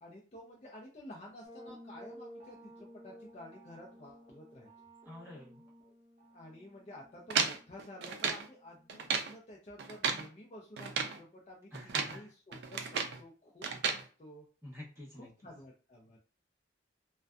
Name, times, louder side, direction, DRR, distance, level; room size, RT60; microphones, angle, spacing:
voice 1, 0.0-4.7 6.3-14.5 15.1-16.2, left 1 dB, 35° left, -2 dB, 0.4 m, -51 dB
sound 1, 1.4-9.1, equal, 45° right, 0.8 m, -55 dB
voice 2, 5.0-5.6 11.7-12.3 14.6-15.3, left 1 dB, 15° right, -7 dB, 1.0 m, -48 dB
sound 2, 7.3-8.5 8.9-9.3 9.8-10.3 10.8-11.2 11.7-12.2 12.5-13.2 13.6-14.0, right 5 dB, 60° right, 0.4 m, -34 dB
2.5 x 2.2 x 2.3 m, 0.38 s
head